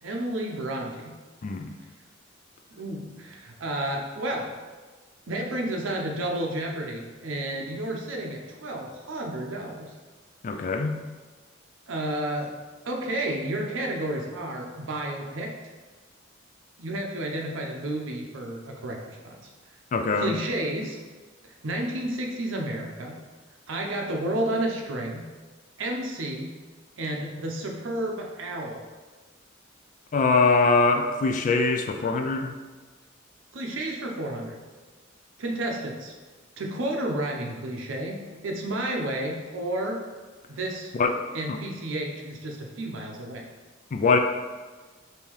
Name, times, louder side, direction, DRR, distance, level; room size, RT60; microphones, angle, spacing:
voice 1, 0.0-1.1 2.7-4.5 5.3-9.9 11.9-12.5 12.8-15.5 16.8-19.5 20.2-21.0 21.6-23.2 23.7-25.2 25.8-26.5 27.0-28.8 33.5-34.6 35.4-36.1 36.6-38.2 38.4-40.0 40.5-40.9 41.3-43.5, right 1 dB, 75° right, 1 dB, 0.6 m, -31 dB
voice 2, 10.4-10.9 19.9-20.4 30.1-32.5 40.9-41.1 41.5-41.6 43.9-44.2, left 4 dB, 40° left, 5 dB, 0.3 m, -22 dB
5.3 x 2.8 x 3.0 m, 1.3 s
head